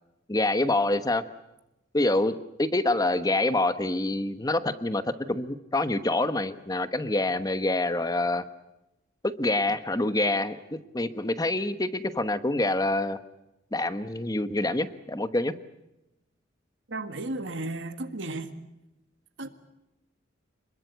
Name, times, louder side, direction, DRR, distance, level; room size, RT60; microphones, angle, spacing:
voice 1, 0.3-1.2 1.9-8.4 9.2-13.2 13.7-15.5, left 2 dB, 20° left, 11 dB, 1.1 m, -26 dB
voice 2, 16.9-18.5 19.4-19.5, right 2 dB, 70° right, 8 dB, 1.8 m, -34 dB
27.5 x 21.0 x 8.1 m, 0.92 s
head